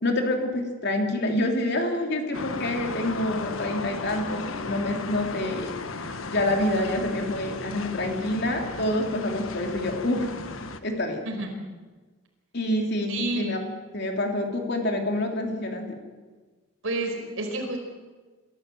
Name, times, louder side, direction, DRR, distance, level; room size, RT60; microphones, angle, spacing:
voice 1, 0.0-10.3 10.8-11.2 12.5-13.6 13.9-16.0, left 1 dB, 50° left, 3 dB, 3.2 m, -27 dB
sound 1, 2.3-10.8, left 3 dB, 75° left, 1.3 m, -35 dB
voice 2, 13.1-13.5 16.8-17.8, right 2 dB, 70° right, 3 dB, 4.7 m, -29 dB
27.0 x 13.5 x 7.8 m, 1.3 s
head